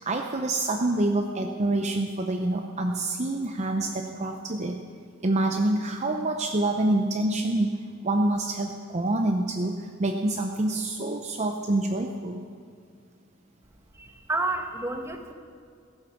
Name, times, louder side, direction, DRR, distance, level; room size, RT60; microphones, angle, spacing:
voice 1, 0.0-4.8 5.2-7.8 8.0-12.4, right 2 dB, 35° right, 4 dB, 0.7 m, -26 dB
voice 2, 14.0-15.3, right 2 dB, 15° right, 5 dB, 1.1 m, -30 dB
15.0 x 11.0 x 7.1 m, 2.2 s
head